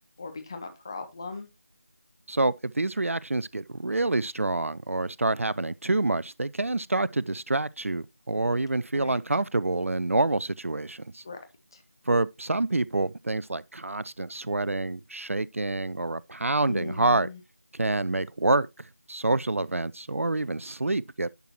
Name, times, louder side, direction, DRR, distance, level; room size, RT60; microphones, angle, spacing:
voice 1, 0.2-1.5 8.9-9.2 11.2-11.4 16.7-17.4, left 4 dB, 20° left, 0.8 m, -38 dB
voice 2, 2.3-11.2 12.1-17.3 17.7-21.3, right 2 dB, 65° right, 0.4 m, -27 dB
10.5 x 5.9 x 2.8 m
figure-of-eight pair, 165°, 8 cm